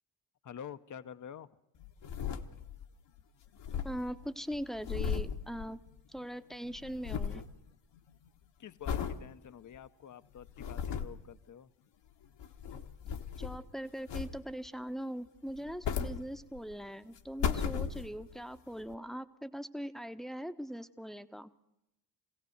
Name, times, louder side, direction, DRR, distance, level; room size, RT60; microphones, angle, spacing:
voice 1, 0.4-1.5 8.6-11.7, left 8 dB, 35° left, 14 dB, 1.0 m, -48 dB
sound 1, 1.8-2.9 3.2-3.3 3.5-6.2 6.5-7.5 8.0-8.3 8.8-9.2 9.7-9.8 10.4-11.2 12.2-13.7 14.1-14.7 15.5-16.8 17.2-18.4 18.9-19.0, left 7 dB, 60° left, 1.6 m, -36 dB
voice 2, 3.8-5.8 6.1-7.4 13.4-21.5, equal, ahead, 10 dB, 1.1 m, -41 dB
23.5 x 16.5 x 8.0 m, 0.88 s
hypercardioid pair, 50°, 50 cm